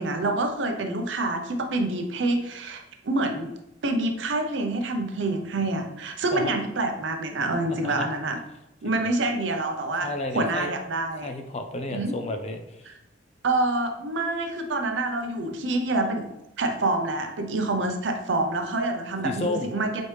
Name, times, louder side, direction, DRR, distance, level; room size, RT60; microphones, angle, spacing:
voice 1, 0.0-3.5 3.8-8.4 8.8-11.3 11.9-12.1 12.9-13.0 13.4-19.9, right 2 dB, 65° right, 4 dB, 0.6 m, -27 dB
voice 2, 7.7-8.1 8.8-8.9 10.0-10.7 11.2-12.9 19.2-19.7, left 2 dB, 35° left, 6 dB, 0.4 m, -32 dB
4.1 x 3.2 x 3.2 m, 0.91 s
head